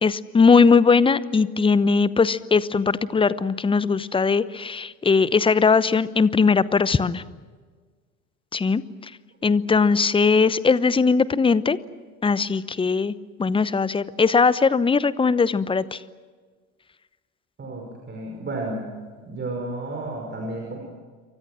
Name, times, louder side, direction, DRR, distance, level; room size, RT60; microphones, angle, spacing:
voice 1, 0.0-7.2 8.5-8.8 9.4-11.8 12.2-13.1 13.4-16.0, left 5 dB, 10° left, 18 dB, 0.9 m, -19 dB
voice 2, 17.6-18.9 19.3-20.8, right 2 dB, 25° right, 1 dB, 5.7 m, -32 dB
28.5 x 24.5 x 6.3 m, 1.5 s
figure-of-eight pair, 70°, 42 cm